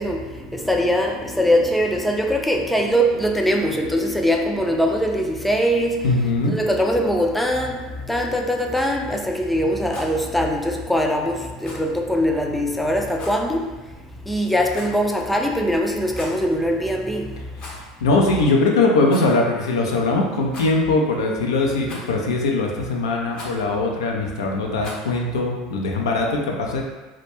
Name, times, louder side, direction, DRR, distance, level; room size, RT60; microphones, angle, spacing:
voice 1, 0.0-6.1 6.4-7.8 8.1-13.7 14.3-17.3, equal, 5° left, 2 dB, 0.3 m, -22 dB
voice 2, 6.0-6.5 18.0-26.8, left 3 dB, 85° left, 0 dB, 0.4 m, -21 dB
Rattle, 9.9-10.2 11.6-11.9 13.1-13.4 14.7-15.1 16.0-16.4 17.5-18.0 18.2-18.3 19.0-19.3 20.5-21.0 21.9-22.3 23.3-23.6 24.8-25.1, left 2 dB, 45° left, 0.7 m, -38 dB
2.2 x 2.1 x 3.0 m, 1.2 s
hypercardioid pair, 80°, 2 cm